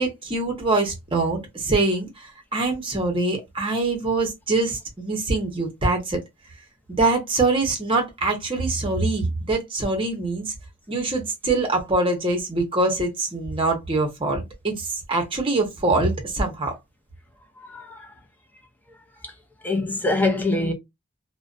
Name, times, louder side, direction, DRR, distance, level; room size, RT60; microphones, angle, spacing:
voice 1, 0.0-6.2 6.9-10.5 10.9-16.7, right 2 dB, 25° right, 0.7 m, -24 dB
voice 2, 17.7-18.1 19.6-20.7, left 2 dB, 10° left, 0.4 m, -24 dB
2.5 x 2.1 x 2.4 m
head